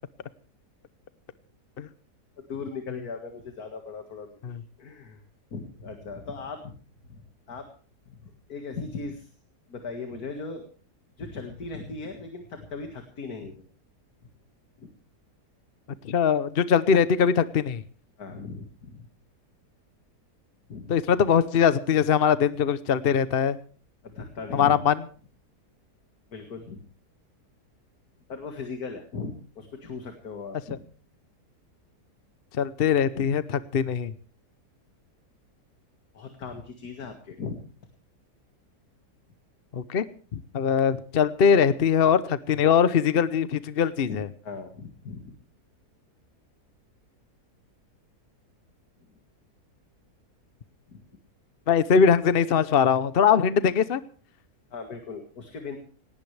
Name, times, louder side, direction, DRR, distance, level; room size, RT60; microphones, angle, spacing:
voice 1, 2.5-4.5 4.8-5.2 5.5-6.7 7.1-7.7 8.2-9.3 9.7-10.7 11.2-13.6 14.8-14.9 18.2-19.1 20.7-20.9 24.0-24.8 26.3-26.8 28.3-30.8 33.1-33.3 36.1-37.6 44.1-45.3 50.9-51.0 54.7-55.8, left 4 dB, 65° left, 5 dB, 2.4 m, -38 dB
voice 2, 16.0-17.8 20.9-23.6 24.5-25.0 32.6-34.1 39.7-40.0 40.3-44.3 51.7-54.0, left 7 dB, 45° left, 14 dB, 0.8 m, -22 dB
19.0 x 17.5 x 3.3 m, 0.41 s
omnidirectional pair, 1.7 m